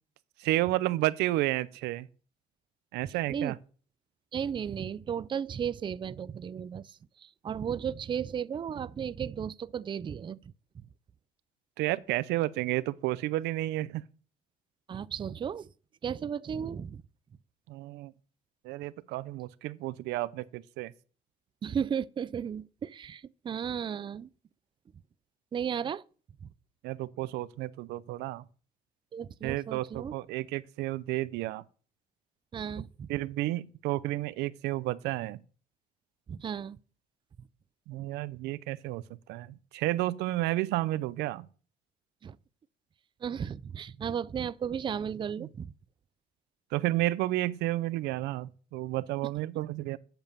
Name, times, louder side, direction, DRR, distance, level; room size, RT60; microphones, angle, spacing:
voice 1, 0.4-2.1 2.9-3.6 11.8-14.0 17.7-18.1 18.6-20.9 26.8-28.4 29.4-31.6 33.1-35.4 37.9-39.0 39.3-41.5 45.4-45.5 46.7-50.0, right 17 dB, 90° right, 0.6 m, -31 dB
voice 2, 3.0-3.6 4.3-10.5 14.9-15.7 16.0-17.0 21.6-24.3 25.5-26.0 26.4-26.5 29.1-30.1 32.5-33.1 36.3-36.8 42.2-42.4 43.2-45.7, right 8 dB, 30° right, 0.4 m, -35 dB
8.0 x 7.1 x 6.8 m
cardioid pair, 110°, 17 cm